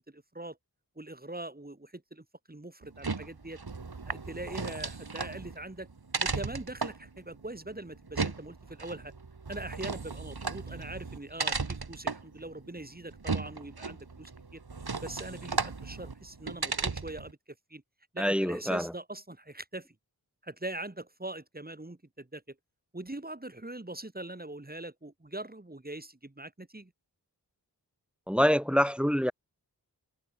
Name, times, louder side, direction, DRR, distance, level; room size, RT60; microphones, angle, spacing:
voice 1, 0.1-0.6 1.0-3.6 4.1-5.9 6.2-9.1 9.5-14.6 15.0-17.4 17.7-17.8 18.1-19.9 20.4-22.6 22.9-26.9, right 2 dB, 25° right, 3.6 m, -42 dB
sound 1, 2.8-17.3, right 4 dB, 75° right, 6.9 m, -36 dB
voice 2, 18.2-18.9 28.3-29.3, equal, 5° right, 1.7 m, -26 dB
wide cardioid pair, 55°, 38 cm